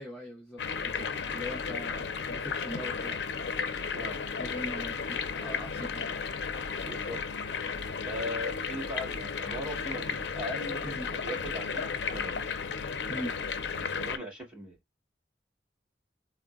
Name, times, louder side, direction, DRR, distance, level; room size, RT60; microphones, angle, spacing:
voice 1, 0.0-3.2 4.3-6.1 10.8-11.1 11.4-11.6 13.1-13.4, equal, 5° left, 0.7 m, -41 dB
sound 1, 0.6-14.2, left 5 dB, 70° left, 0.5 m, -34 dB
voice 2, 6.8-7.2 8.0-10.8 11.1-12.4 13.7-14.8, left 1 dB, 10° right, 2.1 m, -39 dB
3.5 x 2.1 x 2.3 m
head